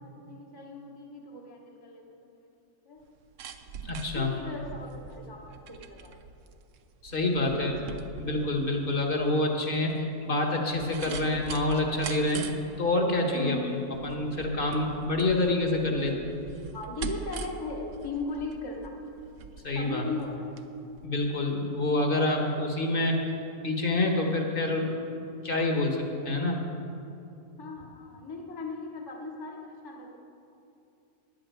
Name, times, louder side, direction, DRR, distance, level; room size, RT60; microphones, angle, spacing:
voice 1, 0.3-2.5 2.8-3.0 4.1-6.2 7.4-7.7 11.0-11.2 13.3-13.7 15.9-16.1 16.7-18.9 19.7-20.5 27.6-30.2, left 3 dB, 20° left, 0 dB, 1.0 m, -38 dB
sound 1, 3.0-20.7 21.0-21.1, right 6 dB, 65° right, 1.0 m, -43 dB
voice 2, 3.8-4.3 7.0-7.7 8.2-12.4 12.8-13.6 14.0-16.1 19.6-20.0 21.0-23.2 23.6-24.9 25.4-26.0 26.2-26.6, left 2 dB, 40° left, 2 dB, 1.6 m, -27 dB
10.5 x 8.5 x 8.2 m, 2.7 s
omnidirectional pair, 1.5 m